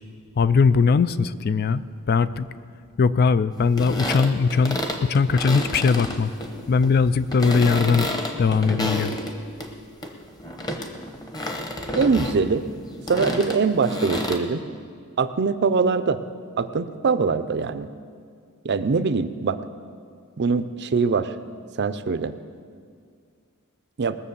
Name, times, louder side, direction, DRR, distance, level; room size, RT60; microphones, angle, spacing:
voice 1, 0.4-2.5 3.0-6.3 6.7-8.1 8.4-9.2, left 5 dB, 45° left, 15 dB, 0.4 m, -20 dB
sound 1, 3.6-9.7 10.0-14.4, left 1 dB, 20° left, 1.1 m, -30 dB
voice 2, 12.0-12.6 13.1-14.6 15.2-16.2 16.6-17.9 18.6-19.6 20.4-21.3 21.8-22.3 24.0-24.2, right 4 dB, 50° right, 12 dB, 0.5 m, -22 dB
19.5 x 7.1 x 6.9 m, 2.2 s
head